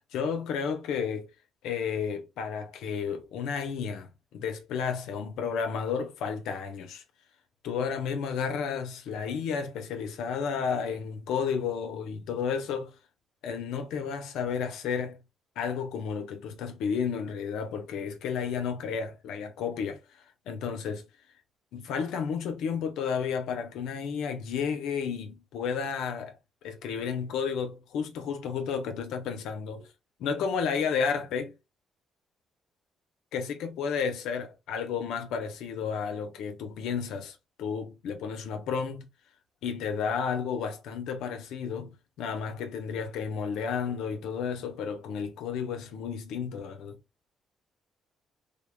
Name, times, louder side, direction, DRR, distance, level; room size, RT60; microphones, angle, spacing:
voice 1, 0.1-1.3 1.6-7.0 7.6-12.9 13.4-15.2 15.6-21.1 21.7-26.3 26.6-29.9 30.2-31.5 33.3-39.1 39.6-47.0, left 6 dB, 90° left, 0.7 m, -32 dB
3.6 x 2.1 x 3.5 m
cardioid pair, 90°, 0 cm